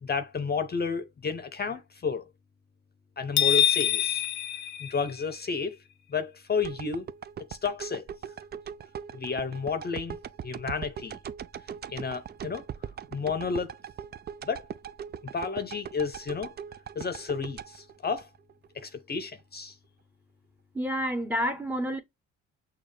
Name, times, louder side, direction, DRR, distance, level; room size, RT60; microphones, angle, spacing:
voice 1, 0.0-2.2 3.2-4.2 4.8-5.8 6.1-7.1 7.6-8.0 9.1-10.2 10.4-11.2 11.9-12.6 13.1-13.7 14.5-14.7 15.3-16.5 17.0-18.3 18.8-19.8, left 5 dB, 30° left, 0.7 m, -31 dB
sound 1, 3.4-5.5, left 10 dB, 65° left, 0.6 m, -25 dB
sound 2, 6.6-18.8 19.2-19.3, right 8 dB, 35° right, 0.4 m, -40 dB
voice 2, 20.7-22.0, equal, 5° right, 0.9 m, -29 dB
6.3 x 2.4 x 3.2 m
cardioid pair, 90°, 30 cm